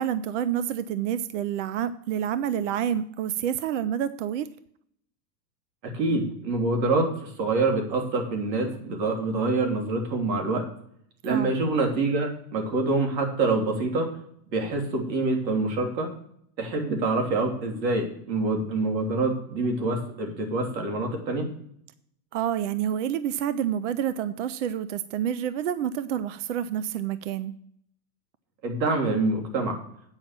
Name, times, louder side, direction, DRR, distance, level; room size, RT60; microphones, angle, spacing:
voice 1, 0.0-4.5 11.2-11.5 22.3-27.5, right 9 dB, 50° right, 14 dB, 0.5 m, -28 dB
voice 2, 5.8-10.7 11.2-14.1 14.5-16.1 16.6-21.5 28.6-29.8, right 3 dB, 90° right, 2 dB, 3.2 m, -26 dB
8.8 x 5.7 x 7.2 m, 0.67 s
supercardioid pair, 170°, 50 cm